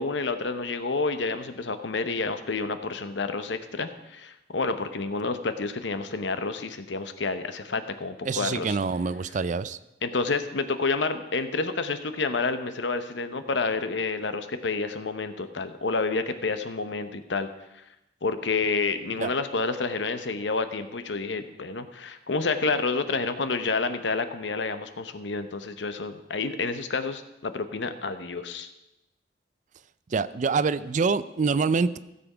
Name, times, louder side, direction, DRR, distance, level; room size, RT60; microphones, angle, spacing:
voice 1, 0.0-8.8 10.0-17.5 18.2-28.7, left 4 dB, 80° left, 10 dB, 0.9 m, -29 dB
voice 2, 8.3-9.8 19.2-19.3 30.1-32.0, right 4 dB, 45° right, 16 dB, 0.4 m, -26 dB
15.5 x 7.0 x 5.0 m, 0.92 s
head